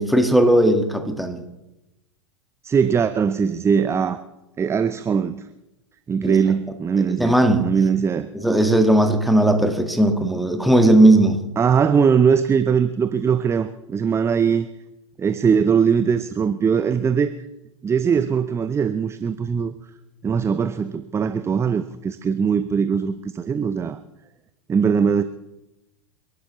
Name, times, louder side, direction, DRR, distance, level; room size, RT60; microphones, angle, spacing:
voice 1, 0.0-1.4 6.2-6.4 7.2-7.7 8.3-11.4, right 1 dB, ahead, 5 dB, 1.6 m, -17 dB
voice 2, 2.6-4.2 4.6-5.4 6.1-8.3 11.6-14.7 15.2-17.3 17.8-19.7 20.2-24.0 24.7-25.2, right 6 dB, 15° right, 12 dB, 0.6 m, -20 dB
29.0 x 12.0 x 3.1 m, 0.94 s
figure-of-eight pair, 95°, 16 cm